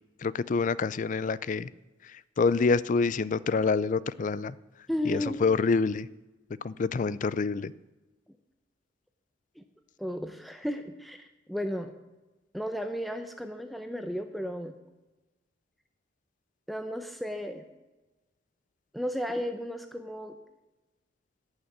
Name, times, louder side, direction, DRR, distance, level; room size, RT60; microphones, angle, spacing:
voice 1, 0.2-1.7 2.1-4.5 5.0-6.1 6.6-7.7, left 4 dB, 40° left, 19 dB, 0.4 m, -27 dB
voice 2, 4.9-5.4 9.6-9.7 10.0-11.9 12.5-14.7 16.7-17.6 18.9-20.4, equal, ahead, 6 dB, 0.6 m, -34 dB
12.0 x 6.5 x 9.4 m, 1.1 s
head